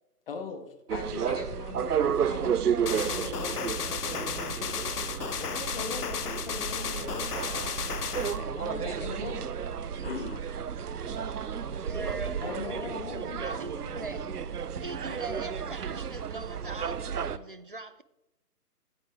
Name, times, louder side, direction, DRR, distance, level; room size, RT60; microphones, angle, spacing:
voice 1, 0.3-2.6 3.1-5.0 5.4-7.7 8.1-10.5 12.4-13.5, left 5 dB, 35° left, 1.6 m, -40 dB
sound 1, 0.9-17.4, right 7 dB, 70° right, 0.8 m, -32 dB
sound 2, 2.9-8.4, left 7 dB, 70° left, 0.9 m, -34 dB
voice 2, 11.0-12.6 13.5-14.8 15.5-15.6, left 1 dB, 5° left, 1.0 m, -49 dB
voice 3, 11.9-14.2 14.8-18.0, right 2 dB, 35° right, 0.4 m, -41 dB
13.5 x 9.9 x 3.6 m
figure-of-eight pair, 145°, 48 cm